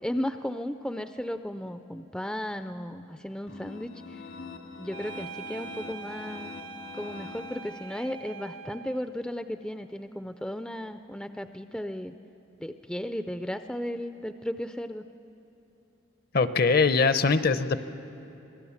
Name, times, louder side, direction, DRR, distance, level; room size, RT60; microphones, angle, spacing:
voice 1, 0.0-4.2 4.8-6.6 6.9-12.1 12.6-15.0, equal, 5° left, 9 dB, 0.4 m, -35 dB
sound 1, 3.5-8.2, left 4 dB, 80° left, 1.9 m, -44 dB
sound 2, 4.9-9.1, right 5 dB, 75° right, 0.9 m, -43 dB
voice 2, 16.3-17.8, left 4 dB, 50° left, 13 dB, 0.7 m, -22 dB
25.5 x 18.0 x 7.2 m, 3.0 s
head